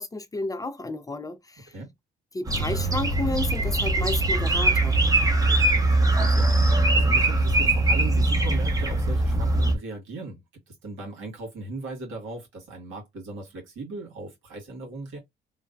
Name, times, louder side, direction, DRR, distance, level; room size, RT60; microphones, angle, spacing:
voice 1, 0.0-1.7 2.3-5.0, left 2 dB, 15° left, 0.4 m, -32 dB
sound 1, 2.5-9.7, right 2 dB, 15° right, 0.7 m, -21 dB
voice 2, 5.1-15.2, right 2 dB, 85° right, 1.7 m, -38 dB
3.2 x 2.1 x 2.5 m
cardioid pair, 90°, 20 cm